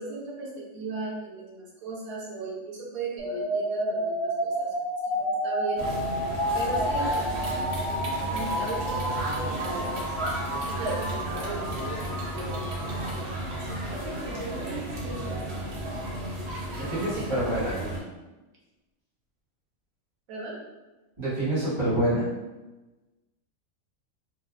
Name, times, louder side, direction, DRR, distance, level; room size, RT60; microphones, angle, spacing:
voice 1, 0.0-4.7 5.1-5.8 6.5-7.3 8.3-10.0 10.5-12.9 13.7-15.7 16.9-17.7 20.3-20.6, right 3 dB, 80° right, -4 dB, 1.1 m, -37 dB
sound 1, 3.2-13.2, equal, 5° right, 0.9 m, -31 dB
sound 2, 5.8-18.0, right 1 dB, 60° right, 0.8 m, -33 dB
voice 2, 16.8-17.8 21.2-22.3, right 1 dB, 20° right, -11 dB, 1.3 m, -27 dB
3.4 x 2.3 x 2.3 m, 1.1 s
omnidirectional pair, 1.5 m